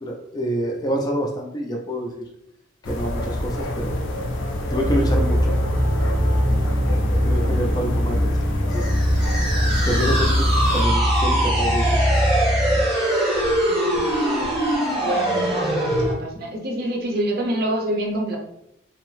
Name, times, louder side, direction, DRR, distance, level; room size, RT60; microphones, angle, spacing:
voice 1, 0.0-2.2 2.8-4.0 4.7-5.6 7.2-8.3 8.7-8.9 9.9-12.0, equal, 20° left, 1 dB, 0.3 m, -27 dB
sound 1, 2.8-10.8, left 1 dB, 80° left, 0.5 m, -27 dB
sound 2, 4.8-12.8, equal, 90° right, 0.7 m, -22 dB
sound 3, 8.7-16.1, right 1 dB, ahead, 0.8 m, -23 dB
voice 2, 13.7-14.0 15.0-18.4, right 1 dB, 50° right, 1 dB, 0.5 m, -27 dB
2.7 x 2.0 x 3.0 m, 0.78 s
head